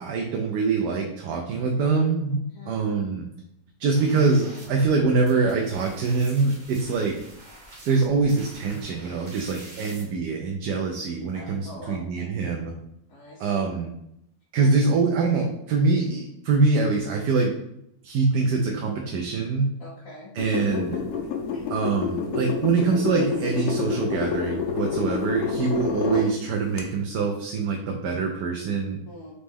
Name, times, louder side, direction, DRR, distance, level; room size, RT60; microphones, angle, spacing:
voice 1, 0.0-3.2 3.8-7.1 7.9-12.7 13.4-13.9 14.5-17.6 18.0-19.7 20.3-21.0 21.7-29.0, right 4 dB, 80° right, 2 dB, 1.1 m, -24 dB
sound 1, 3.9-10.0, right 1 dB, 35° right, 0.8 m, -46 dB
voice 2, 11.3-12.2 13.1-13.6 14.5-14.7 19.8-20.3 21.5-21.7 29.1-29.3, left 1 dB, 60° left, -8 dB, 1.4 m, -44 dB
sound 2, 20.4-26.3 26.8-26.9, left 6 dB, 85° left, 1.3 m, -28 dB
3.9 x 3.1 x 3.5 m, 0.79 s
omnidirectional pair, 1.7 m